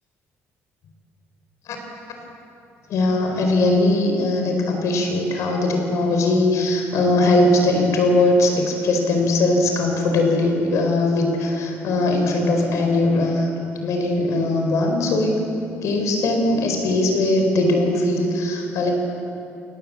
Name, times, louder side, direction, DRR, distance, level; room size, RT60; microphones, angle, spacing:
voice 1, 2.9-13.5 13.8-15.4 15.8-18.9, left 2 dB, 70° left, 3 dB, 4.6 m, -20 dB
28.5 x 20.0 x 7.6 m, 2.8 s
cardioid pair, 115°, 6 cm